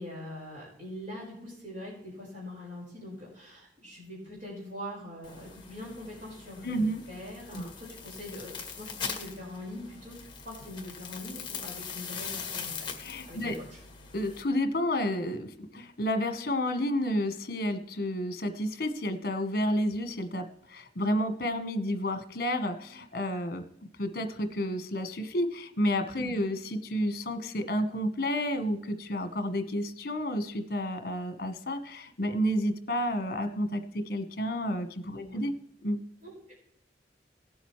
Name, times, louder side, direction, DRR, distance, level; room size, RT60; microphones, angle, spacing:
voice 1, 0.0-10.2 10.4-12.9 13.3-13.8 26.2-26.4 35.2-35.4 36.2-36.5, left 1 dB, 45° right, -5 dB, 5.0 m, -43 dB
sound 1, 5.2-14.4, left 6 dB, 25° left, 1.6 m, -41 dB
voice 2, 6.6-7.0 7.5-7.7 13.0-13.6 14.1-23.6 24.0-35.5 35.8-36.0, equal, 55° left, 8 dB, 1.3 m, -30 dB
18.0 x 7.9 x 3.2 m, 0.74 s
head